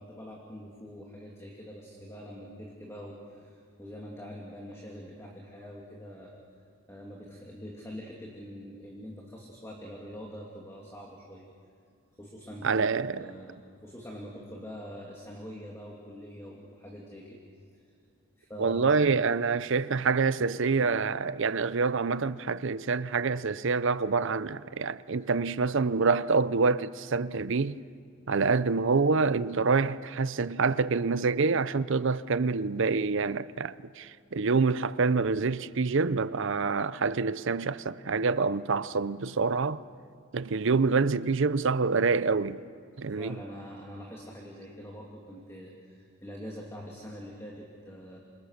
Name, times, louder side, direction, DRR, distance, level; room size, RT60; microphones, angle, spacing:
voice 1, 0.0-6.4 6.9-11.5 12.2-13.6 13.8-17.4 17.7-17.8 18.4-19.0 43.1-48.2, equal, 10° left, 2.7 m, -44 dB
voice 2, 12.6-13.2 18.6-27.8 28.3-39.8 40.3-42.6 43.0-43.4, right 4 dB, 55° right, 0.6 m, -26 dB
28.0 x 27.0 x 6.6 m
head